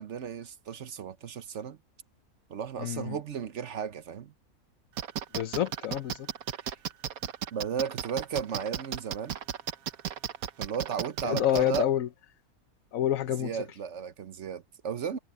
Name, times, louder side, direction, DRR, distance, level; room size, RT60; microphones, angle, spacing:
voice 1, 0.0-1.8 2.5-4.3 6.6-6.8 7.2-9.4 10.6-11.9 13.4-15.2, right 7 dB, 60° right, 1.1 m, -35 dB
voice 2, 2.8-3.2 5.3-6.3 11.2-12.1 12.9-13.6, left 11 dB, 70° left, 1.2 m, -28 dB
sound 1, 5.0-11.8, right 9 dB, 75° right, 1.4 m, -34 dB
omnidirectional pair, 1.5 m